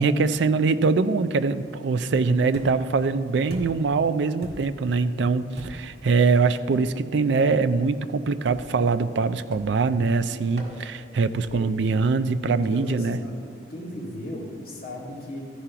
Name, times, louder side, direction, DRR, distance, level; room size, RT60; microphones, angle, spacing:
voice 1, 0.0-13.2, right 4 dB, 70° right, 11 dB, 0.4 m, -23 dB
sound 1, 2.5-3.0 3.5-3.9 4.4-4.9 5.6-6.0 6.7-6.9 8.4-8.8 9.5-9.9 10.6-10.8 11.4-11.8, right 1 dB, 55° right, 1.8 m, -40 dB
voice 2, 12.6-13.3 13.7-15.4, left 1 dB, 50° left, -4 dB, 2.2 m, -36 dB
13.5 x 4.9 x 5.7 m, 2.2 s
head